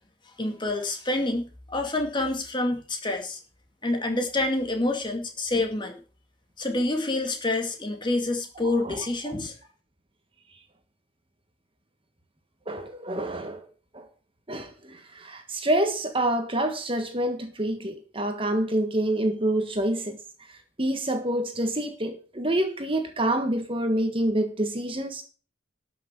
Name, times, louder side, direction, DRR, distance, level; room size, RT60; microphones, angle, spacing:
voice 1, 0.4-3.4 3.8-6.0 6.6-9.6, left 2 dB, 25° left, 2.2 m, -27 dB
voice 2, 8.6-9.0 9.3-9.5 12.7-13.7 13.9-14.1 14.5-20.2 20.8-25.2, right 1 dB, 25° right, 1.5 m, -27 dB
12.5 x 6.3 x 8.1 m
head